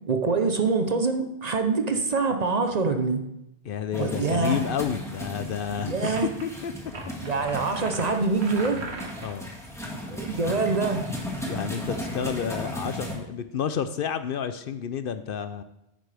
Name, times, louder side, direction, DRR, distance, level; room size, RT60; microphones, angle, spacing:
voice 1, 0.1-3.3 4.0-4.6 5.9-6.3 7.2-8.8 10.1-11.0, right 4 dB, 45° right, 6 dB, 0.8 m, -25 dB
voice 2, 3.6-5.9 6.4-6.7 9.2-9.5 11.4-15.6, left 8 dB, 65° left, 11 dB, 0.7 m, -30 dB
sound 1, 3.9-13.1, equal, 5° left, 1.7 m, -36 dB
sound 2, 6.0-6.4 6.9-9.4, right 3 dB, 80° right, 1.4 m, -39 dB
10.0 x 9.1 x 3.4 m, 0.85 s
omnidirectional pair, 1.1 m